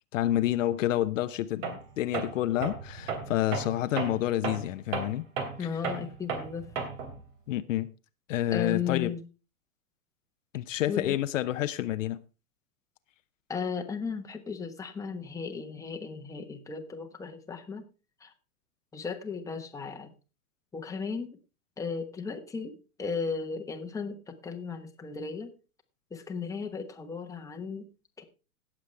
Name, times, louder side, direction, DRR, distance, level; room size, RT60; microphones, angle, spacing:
voice 1, 0.1-5.2 5.6-5.7 7.5-7.9 8.3-9.1 10.5-12.2, left 13 dB, 60° left, 0.8 m, -29 dB
Tools, 1.6-1.9 2.1-7.2, right 5 dB, 60° right, 3.2 m, -34 dB
voice 2, 5.6-6.8 8.5-9.2 10.9-11.2 13.5-17.9 18.2-18.3 18.9-20.1 20.7-21.4 21.8-25.5 26.1-27.9 28.2-28.3, left 5 dB, 5° left, 1.1 m, -35 dB
17.5 x 7.4 x 3.4 m
hypercardioid pair, 120°, 43 cm